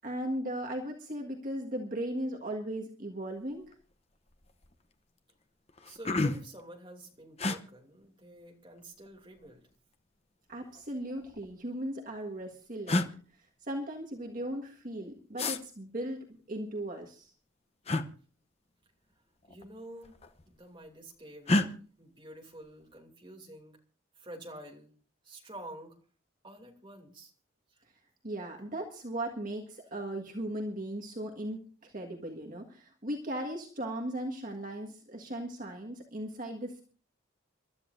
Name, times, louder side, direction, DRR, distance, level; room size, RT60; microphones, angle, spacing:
voice 1, 0.0-3.7 10.5-13.0 13.3-16.2 16.5-17.3 28.2-36.8, right 1 dB, 45° right, 0 dB, 1.6 m, -37 dB
sound 1, 3.7-3.9 4.3-4.7 5.3-5.4 5.7-6.6 7.4-7.6 8.8-9.5 10.6-11.5 12.4-12.5 12.9-13.1 15.4-15.6 17.8-18.1 19.4-19.7 20.0-20.6 21.5-21.7, left 2 dB, 30° left, 0.8 m, -30 dB
voice 2, 5.8-9.6 19.5-20.1 20.5-23.8 24.2-24.9 25.2-26.0 26.4-27.3 27.7-27.8, right 1 dB, 25° right, 0 dB, 2.8 m, -49 dB
28.0 x 12.5 x 2.6 m, 0.40 s
head